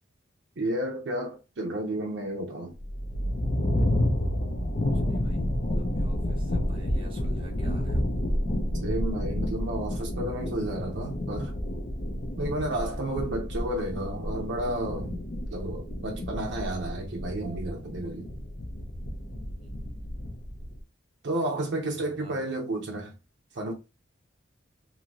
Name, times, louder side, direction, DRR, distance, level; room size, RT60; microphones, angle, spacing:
voice 1, 0.6-2.7 8.8-11.5 12.4-15.2 15.5-18.3 21.2-23.1 23.6-23.7, right 1 dB, 65° right, 0.5 m, -32 dB
sound 1, 2.8-20.8, left 1 dB, 45° left, 0.6 m, -30 dB
voice 2, 4.9-8.1 19.6-20.0 21.9-22.5, right 1 dB, 30° right, 1.0 m, -49 dB
2.6 x 2.6 x 2.9 m
head